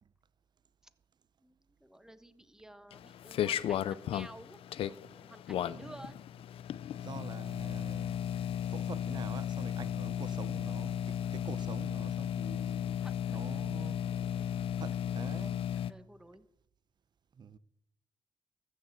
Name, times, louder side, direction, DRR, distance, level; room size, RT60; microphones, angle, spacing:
voice 1, 1.4-6.2 13.0-13.6 15.9-16.5, right 1 dB, 5° right, 1.2 m, -53 dB
sound 1, 2.9-15.9, left 10 dB, 80° left, 0.5 m, -35 dB
voice 2, 5.7-6.1 7.0-8.2 8.7-13.0 13.3-14.2 14.8-15.8 17.4-17.6, right 6 dB, 50° right, 0.6 m, -47 dB
14.0 x 6.5 x 7.9 m
cardioid pair, 70°, 10 cm